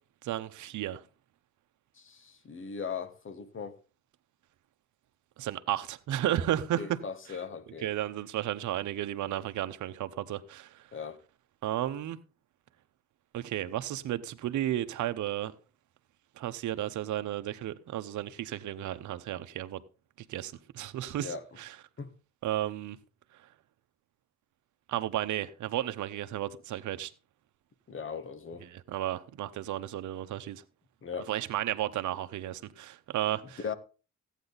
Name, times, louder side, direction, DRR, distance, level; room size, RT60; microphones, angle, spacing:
voice 1, 0.2-1.0 5.4-7.0 7.8-10.9 11.6-12.2 13.3-15.5 16.4-19.8 20.2-21.7 22.4-23.0 24.9-27.1 28.6-30.6 31.3-33.6, right 12 dB, 75° right, 1.0 m, -33 dB
voice 2, 2.0-3.8 6.8-7.9 10.9-11.2 21.2-21.4 22.0-22.1 27.9-28.7 31.0-31.3 33.6-33.7, left 6 dB, 40° left, 1.5 m, -38 dB
14.5 x 9.1 x 4.0 m
cardioid pair, 90°, 30 cm